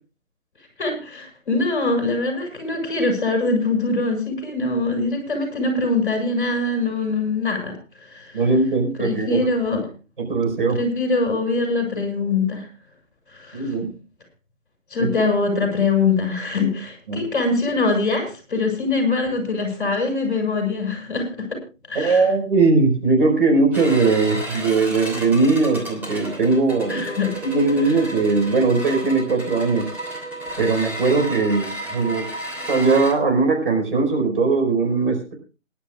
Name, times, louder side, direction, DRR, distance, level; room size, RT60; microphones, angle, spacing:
voice 1, 0.8-8.4 9.0-9.8 10.7-12.7 13.3-13.7 14.9-21.6 21.9-22.2 26.9-27.3, left 3 dB, 40° left, 2 dB, 6.5 m, -23 dB
voice 2, 8.3-9.5 10.2-10.8 13.5-13.9 15.0-15.1 17.1-17.3 21.9-27.1 27.4-29.9 30.6-32.3 32.7-35.3, right 3 dB, 45° right, 2 dB, 5.0 m, -20 dB
sound 1, 23.7-33.1, right 1 dB, 5° right, 3.2 m, -32 dB
26.5 x 11.5 x 2.4 m, 0.32 s
figure-of-eight pair, 155°, 39 cm